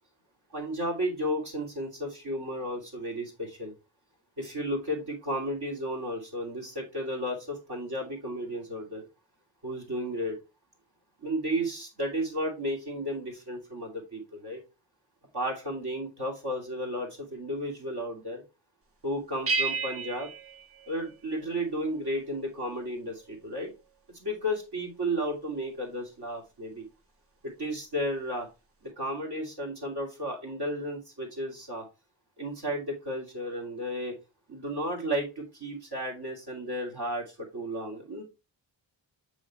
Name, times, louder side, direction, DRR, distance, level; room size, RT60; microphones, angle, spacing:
voice 1, 0.5-3.7 4.4-9.0 9.6-10.4 11.2-14.6 15.3-18.4 19.0-20.3 20.9-23.7 24.2-26.9 27.4-28.5 29.0-31.8 32.4-34.2 34.5-38.2, equal, 55° right, 0 dB, 2.8 m, -33 dB
sound 1, 19.5-21.7, right 4 dB, 30° right, 0.7 m, -33 dB
6.2 x 5.0 x 3.0 m, 0.27 s
cardioid pair, 55°, 46 cm